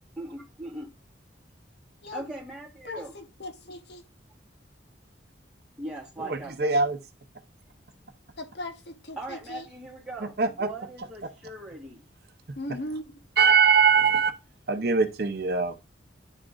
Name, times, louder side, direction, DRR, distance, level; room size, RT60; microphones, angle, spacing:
voice 1, 0.2-0.9 2.1-3.1 5.8-6.8 9.2-12.0, right 1 dB, 5° right, 2.2 m, -40 dB
voice 2, 2.8-4.0 8.4-9.7 12.5-13.3, left 1 dB, 60° left, 1.0 m, -38 dB
voice 3, 6.2-7.0 10.4-10.7 13.4-14.3 14.7-15.7, right 5 dB, 55° right, 0.7 m, -22 dB
9.8 x 3.7 x 3.7 m
head